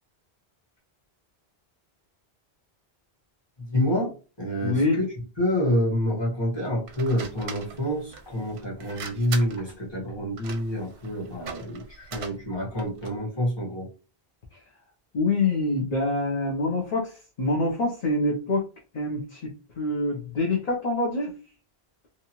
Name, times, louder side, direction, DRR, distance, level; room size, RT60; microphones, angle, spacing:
voice 1, 3.7-4.1 4.4-5.1 5.4-13.9, equal, 25° left, -4 dB, 1.2 m, -27 dB
voice 2, 4.6-5.0 15.1-18.6 18.9-21.3, left 2 dB, 45° left, -2 dB, 0.7 m, -26 dB
sound 1, 6.9-13.2, right 6 dB, 85° right, 0.8 m, -41 dB
2.8 x 2.3 x 2.8 m, 0.35 s
omnidirectional pair, 1.1 m